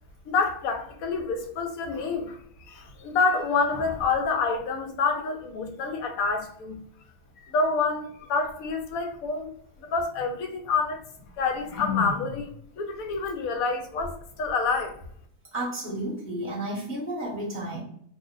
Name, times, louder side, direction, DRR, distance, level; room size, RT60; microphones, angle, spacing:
voice 1, 0.3-2.4 2.7-6.8 7.4-9.5 9.9-11.0 11.4-14.9, left 4 dB, 75° left, 1.0 m, -27 dB
voice 2, 15.5-17.8, right 1 dB, 10° left, 0.7 m, -32 dB
2.7 x 2.1 x 3.7 m
omnidirectional pair, 1.5 m